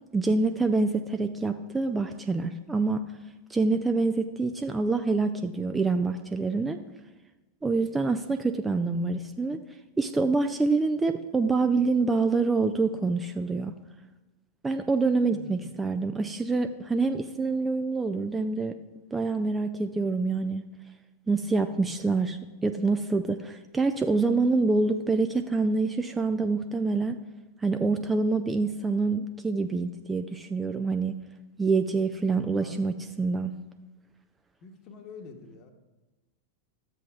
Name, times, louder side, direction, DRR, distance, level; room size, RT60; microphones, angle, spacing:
voice 1, 0.1-3.0 3.5-6.8 7.6-9.6 10.0-13.7 14.6-18.8 19.1-20.7 21.3-27.2 27.6-31.2 31.6-33.6, right 3 dB, 10° right, 7 dB, 0.4 m, -26 dB
voice 2, 15.3-15.7 32.5-33.0 34.6-35.7, left 3 dB, 40° left, 5 dB, 1.1 m, -46 dB
13.0 x 7.8 x 2.4 m, 1.1 s
figure-of-eight pair, 90°, 0 cm